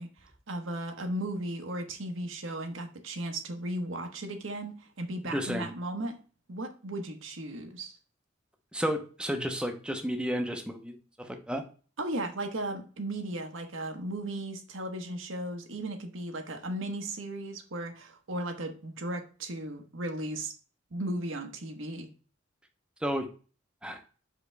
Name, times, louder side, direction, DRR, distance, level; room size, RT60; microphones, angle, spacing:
voice 1, 0.0-6.2 6.5-8.0 12.0-20.5 20.9-22.1, right 1 dB, 70° right, 4 dB, 1.1 m, -36 dB
voice 2, 5.2-5.7 8.7-11.6 23.0-23.3 23.8-24.0, equal, 5° right, 4 dB, 0.7 m, -32 dB
5.9 x 5.0 x 3.3 m, 0.37 s
head